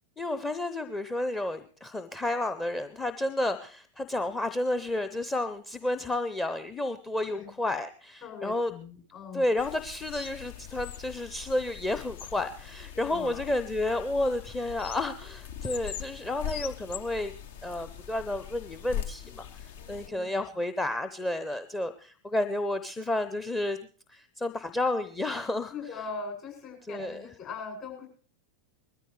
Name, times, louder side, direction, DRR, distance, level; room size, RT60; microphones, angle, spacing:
voice 1, 0.2-8.7 9.3-17.3 17.6-23.8 24.1-25.7 26.9-27.2, left 1 dB, 10° left, 9 dB, 0.7 m, -31 dB
voice 2, 8.2-9.4 12.9-13.5 19.8-20.5 25.7-28.1, left 4 dB, 40° left, 1 dB, 7.5 m, -41 dB
sound 1, 9.6-20.1, left 9 dB, 55° left, 0.8 m, -41 dB
21.0 x 13.5 x 3.3 m, 0.41 s
figure-of-eight pair, 90°, 0 cm